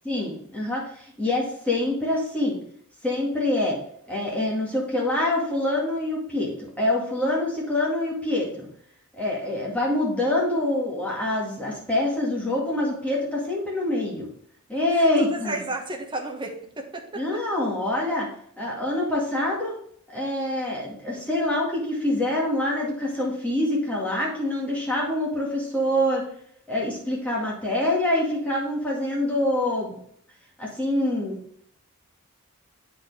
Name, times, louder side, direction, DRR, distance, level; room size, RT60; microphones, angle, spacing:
voice 1, 0.0-2.6 3.0-3.8 4.1-8.7 9.2-14.3 14.7-15.6 17.2-18.3 18.6-19.8 20.1-26.2 26.7-30.0 30.6-31.4, left 1 dB, 5° left, -3 dB, 2.1 m, -25 dB
voice 2, 14.9-17.4, right 2 dB, 20° right, 2 dB, 1.3 m, -33 dB
8.3 x 4.4 x 4.9 m, 0.66 s
head